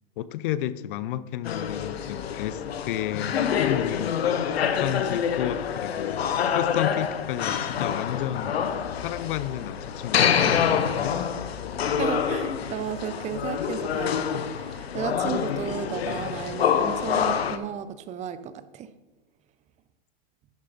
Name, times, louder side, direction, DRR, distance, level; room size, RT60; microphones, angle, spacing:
voice 1, 0.2-4.2 4.7-6.2 6.5-8.5 9.0-11.2, left 13 dB, 60° left, 16 dB, 0.6 m, -32 dB
sound 1, 1.4-17.6, left 8 dB, 85° left, 0.8 m, -26 dB
voice 2, 12.0-18.9, right 9 dB, 25° right, 13 dB, 0.5 m, -34 dB
11.5 x 6.5 x 4.0 m, 1.1 s
hypercardioid pair, 120°, 30 cm